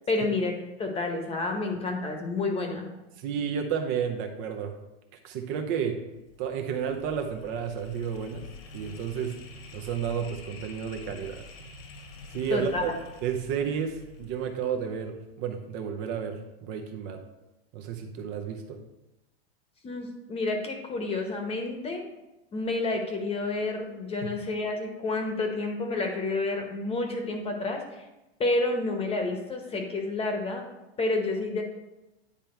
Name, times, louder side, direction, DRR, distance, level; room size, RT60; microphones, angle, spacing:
voice 1, 0.1-0.5 0.8-2.9 12.5-12.8 19.8-22.0 22.5-28.0 28.4-30.6 31.0-31.6, left 2 dB, 20° left, 3 dB, 1.0 m, -29 dB
voice 2, 3.2-4.7 5.2-6.0 6.4-8.4 8.7-9.4 9.7-11.4 12.3-12.9 13.2-17.2 17.7-18.8 24.2-24.3, right 7 dB, 40° right, 4 dB, 0.7 m, -31 dB
sound 1, 6.1-15.2, left 3 dB, 70° left, 1.5 m, -47 dB
9.7 x 3.4 x 4.4 m, 0.98 s
supercardioid pair, 135°, 31 cm